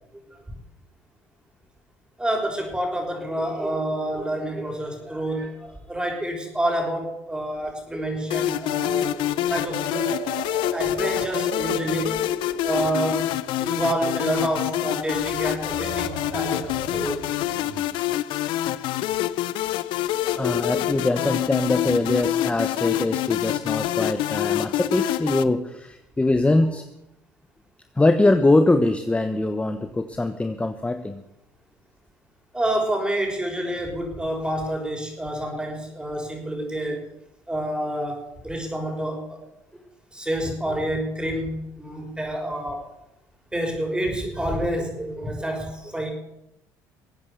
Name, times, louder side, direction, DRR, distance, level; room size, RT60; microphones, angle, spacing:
voice 1, 2.2-9.1 9.5-10.2 10.7-12.1 12.6-13.3 13.6-17.3 20.4-20.7 21.0-21.2 32.5-37.0 37.5-39.4 40.1-42.9 43.5-46.1, right 1 dB, 10° right, 2 dB, 6.0 m, -28 dB
sound 1, 8.3-25.4, left 13 dB, 70° left, 0.7 m, -26 dB
sound 2, 8.3-13.3 15.0-18.2 19.9-20.9, right 6 dB, 65° right, 2.2 m, -38 dB
voice 2, 20.1-26.8 28.0-31.2, left 2 dB, 15° left, 8 dB, 1.2 m, -22 dB
22.0 x 8.9 x 7.0 m, 0.85 s
hypercardioid pair, 70°, 9 cm